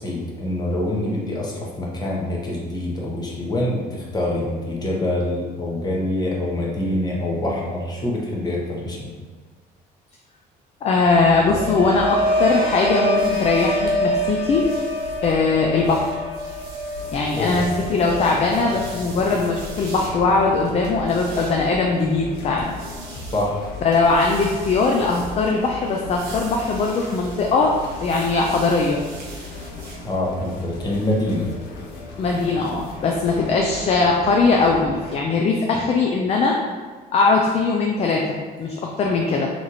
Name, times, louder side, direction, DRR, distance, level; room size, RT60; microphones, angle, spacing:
voice 1, 0.0-9.1 17.4-17.6 23.3-23.6 30.0-31.5, left 1 dB, 25° left, -3 dB, 0.9 m, -25 dB
voice 2, 10.8-14.7 15.2-16.1 17.1-22.7 23.8-27.7 28.0-29.0 32.2-36.6 37.1-39.5, left 3 dB, 40° left, 0 dB, 0.4 m, -20 dB
sound 1, 11.1-21.1 21.5-21.9, equal, 35° right, 0.8 m, -26 dB
sound 2, 13.2-30.0, equal, 70° right, 0.9 m, -40 dB
sound 3, 17.0-35.2, left 2 dB, 85° left, 0.6 m, -37 dB
3.0 x 2.5 x 4.0 m, 1.4 s
cardioid pair, 110°, 17 cm